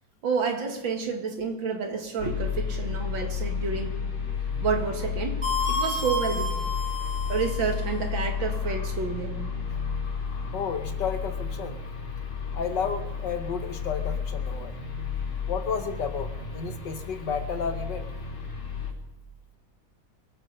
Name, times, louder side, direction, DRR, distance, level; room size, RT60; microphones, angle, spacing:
voice 1, 0.2-4.0 4.6-5.4 5.7-6.5 7.3-9.4, right 5 dB, 75° right, 3 dB, 2.7 m, -29 dB
sound 1, 2.2-18.9, left 6 dB, 90° left, 3.6 m, -32 dB
sound 2, 5.4-7.8, left 2 dB, 25° right, 4.6 m, -30 dB
voice 2, 10.5-11.8 12.5-14.7 15.5-18.1, left 6 dB, 65° left, 7 dB, 1.6 m, -32 dB
24.0 x 8.7 x 5.5 m, 1.1 s
omnidirectional pair, 2.2 m